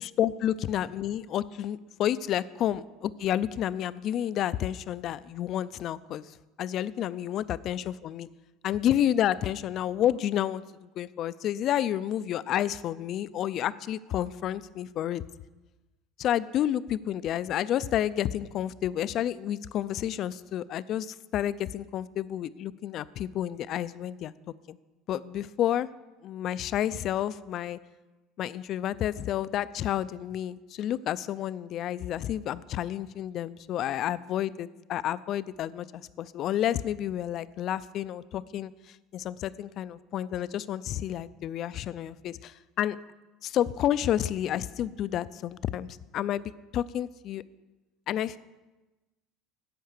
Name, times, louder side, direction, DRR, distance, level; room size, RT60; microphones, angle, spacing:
voice 1, 0.2-6.3 6.6-8.3 8.6-10.6 11.0-15.2 16.2-24.3 25.1-25.9 26.2-27.8 28.4-38.7 39.1-43.0 43.4-47.4 48.1-48.4, left 11 dB, 45° left, 17 dB, 0.4 m, -30 dB
10.5 x 8.2 x 6.6 m, 1.1 s
cardioid pair, 135°, 0 cm